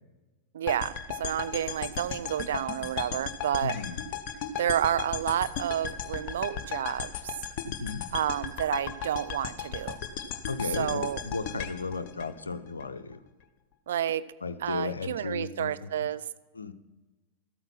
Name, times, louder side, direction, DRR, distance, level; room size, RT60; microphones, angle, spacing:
voice 1, 0.5-3.8 4.6-7.3 8.1-10.0 10.7-11.2 13.9-14.2 14.6-16.2, right 10 dB, 60° right, 14 dB, 0.4 m, -30 dB
sound 1, 0.7-12.8, left 8 dB, 45° left, 0.9 m, -36 dB
voice 2, 3.6-4.0 7.7-8.1 10.5-13.2 14.4-15.9 16.5-16.7, left 4 dB, 75° left, 11 dB, 0.6 m, -35 dB
13.5 x 8.9 x 5.7 m, 1.2 s
figure-of-eight pair, 90°, 0 cm